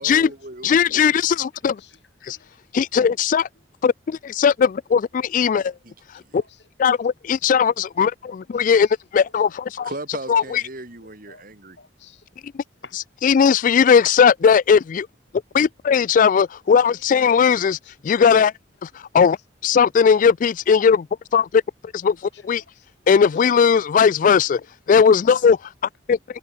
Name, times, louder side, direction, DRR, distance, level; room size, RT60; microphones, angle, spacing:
voice 1, 0.0-1.1 5.8-6.4 9.8-11.8, right 2 dB, 50° right, 5.2 m, -37 dB
voice 2, 0.6-1.8 2.2-2.4 2.7-3.5 3.8-5.7 6.3-6.4 6.8-9.9 10.3-10.6 12.9-15.1 15.5-17.8 18.0-18.5 18.8-19.4 19.6-21.0 21.3-21.6 21.9-22.2 22.4-22.6 23.1-24.6 24.9-25.6 26.1-26.2, left 6 dB, 45° left, 0.3 m, -18 dB
voice 3, 1.8-2.6 6.3-6.6 8.8-8.9 9.5-9.6 11.0-11.4 11.8-12.2 12.8-13.0 16.7-16.8 17.8-17.9 22.3-22.4 22.7-23.5 24.9-25.5, left 5 dB, 70° left, 4.9 m, -50 dB
head